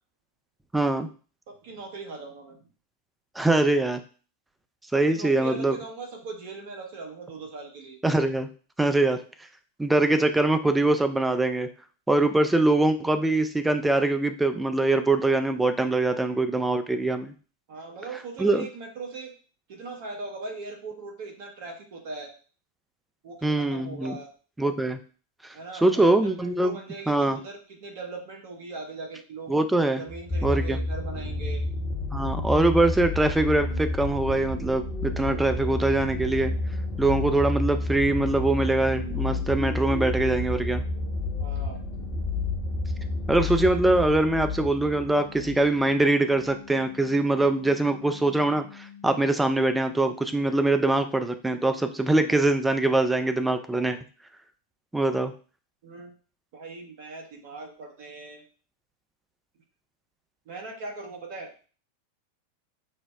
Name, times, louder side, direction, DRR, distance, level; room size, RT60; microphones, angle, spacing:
voice 1, 0.7-1.1 3.4-4.0 4.9-5.8 8.0-8.5 8.8-9.2 9.8-11.7 12.1-17.3 18.4-18.7 23.4-24.2 24.6-25.0 25.7-26.8 27.1-27.4 29.5-30.0 30.4-30.8 32.1-36.5 37.0-40.8 43.3-54.0 54.9-55.3, right 2 dB, 5° right, 8 dB, 0.3 m, -23 dB
voice 2, 1.5-2.6 4.9-8.0 17.7-19.3 19.7-22.3 23.2-24.3 25.5-29.5 30.0-31.6 41.4-41.8 55.8-56.1 56.5-58.4 60.5-61.5, right 3 dB, 50° right, 2 dB, 0.9 m, -39 dB
sound 1, 30.1-45.7 46.5-46.6, left 2 dB, 35° left, 0.8 m, -30 dB
sound 2, 34.2-49.3, left 9 dB, 85° right, 1.0 m, -47 dB
5.4 x 2.0 x 2.3 m, 0.39 s
figure-of-eight pair, 90°, 0 cm